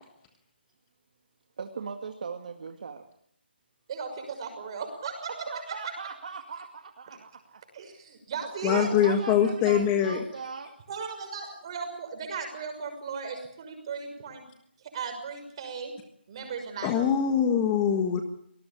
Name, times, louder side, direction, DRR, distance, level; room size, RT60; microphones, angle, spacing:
voice 1, 1.6-3.0 5.5-7.6 9.0-10.7, right 5 dB, 45° right, 5 dB, 2.1 m, -39 dB
voice 2, 3.9-5.3 7.7-8.9 10.9-14.4 14.9-15.9 16.3-17.1, right 5 dB, 30° right, 5 dB, 6.1 m, -36 dB
voice 3, 8.6-10.2 16.8-18.2, left 8 dB, 15° left, 6 dB, 1.4 m, -23 dB
25.5 x 19.0 x 8.6 m, 0.72 s
hypercardioid pair, 170°, 6 cm